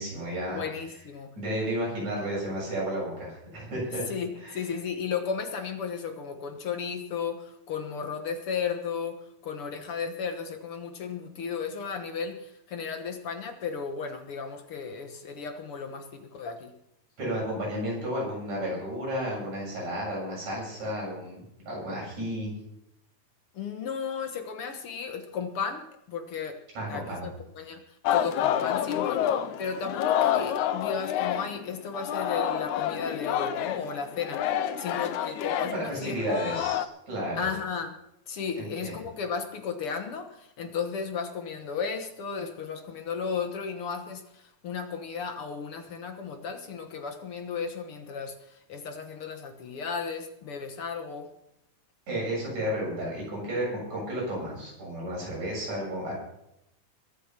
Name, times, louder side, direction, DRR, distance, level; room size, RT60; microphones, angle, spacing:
voice 1, 0.0-0.6 1.4-4.0 4.4-4.7 17.2-22.5 26.8-27.3 35.7-37.5 38.5-38.9 52.1-56.1, equal, 70° right, -4 dB, 8.9 m, -32 dB
voice 2, 0.5-1.3 4.1-16.7 23.5-26.6 26.9-27.8 28.1-29.3 29.6-34.5 34.8-36.2 36.4-36.6 37.4-38.0 38.3-51.3, left 6 dB, 55° left, 6 dB, 1.9 m, -34 dB
Singing, 28.0-31.6 31.9-36.9, left 10 dB, 90° left, 2.2 m, -28 dB
22.0 x 7.7 x 5.9 m, 0.82 s
omnidirectional pair, 3.4 m